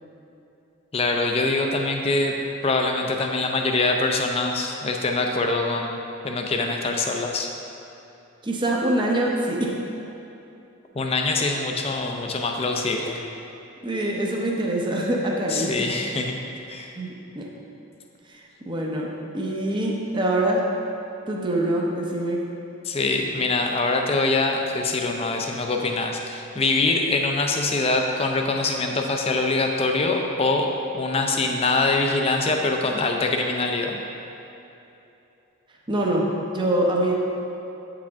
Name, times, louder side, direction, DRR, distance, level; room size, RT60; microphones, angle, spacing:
voice 1, 0.9-2.3 2.6-6.0 6.2-7.5 10.9-13.2 15.5-16.4 16.7-16.9 22.8-30.7 30.9-34.0, left 3 dB, 30° left, 2 dB, 0.5 m, -24 dB
voice 2, 8.4-9.7 13.8-15.7 17.0-17.5 18.3-20.7 21.3-22.4 35.9-36.3 36.5-37.2, right 1 dB, 20° right, -2 dB, 0.7 m, -24 dB
8.3 x 4.9 x 3.5 m, 2.9 s
head